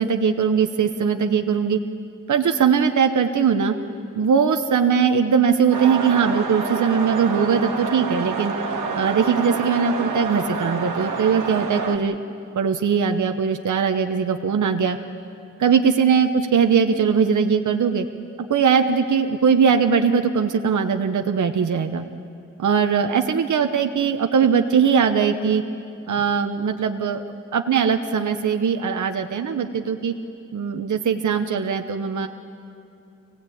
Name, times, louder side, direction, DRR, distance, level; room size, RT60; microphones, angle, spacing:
voice 1, 0.0-1.8 2.3-3.7 4.1-8.5 8.9-12.2 12.5-15.0 15.6-18.1 18.5-22.0 22.6-25.6 26.1-27.2 27.5-30.1 30.5-32.3, right 6 dB, 75° right, 5 dB, 1.0 m, -20 dB
sound 1, 5.7-12.0, right 4 dB, 90° right, 1.7 m, -28 dB
25.5 x 17.5 x 8.6 m, 2.6 s
cardioid pair, 60°, 30 cm